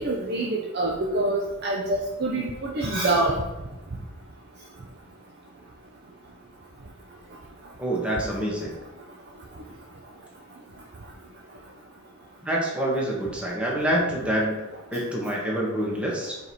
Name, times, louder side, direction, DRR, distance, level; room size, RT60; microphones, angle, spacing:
voice 1, 0.0-3.3, right 2 dB, 55° right, -1 dB, 0.7 m, -26 dB
voice 2, 7.8-8.8 12.4-16.4, right 1 dB, 5° right, -4 dB, 1.2 m, -27 dB
5.1 x 4.5 x 4.1 m, 1.1 s
head